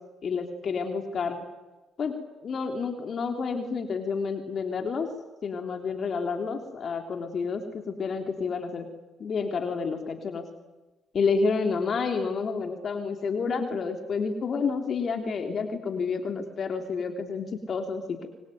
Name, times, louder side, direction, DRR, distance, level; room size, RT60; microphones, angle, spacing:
voice 1, 0.2-1.4 2.0-2.1 2.4-5.1 5.4-8.9 9.2-10.4 11.1-18.3, left 5 dB, 50° left, 5 dB, 3.4 m, -29 dB
25.0 x 24.0 x 9.4 m, 1.1 s
cardioid pair, 90°, 0 cm